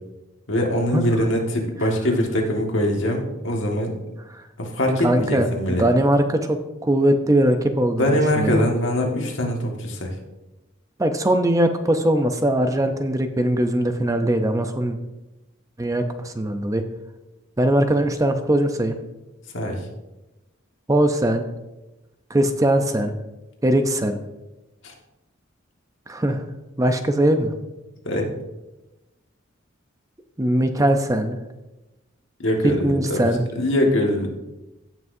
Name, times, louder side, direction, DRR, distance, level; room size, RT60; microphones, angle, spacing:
voice 1, 0.5-3.9 4.6-5.9 8.0-10.1 19.5-19.8 24.8-24.9 28.0-28.3 32.4-33.2 33.5-34.3, left 1 dB, 70° left, 1 dB, 1.7 m, -22 dB
voice 2, 5.0-6.6 6.8-8.7 11.0-15.0 15.8-16.8 17.6-19.0 20.9-21.5 22.3-23.1 23.6-24.2 26.1-26.4 26.8-27.5 30.4-31.4 32.8-33.5, right 1 dB, 15° right, 7 dB, 0.5 m, -20 dB
16.5 x 6.0 x 2.7 m, 1.0 s
head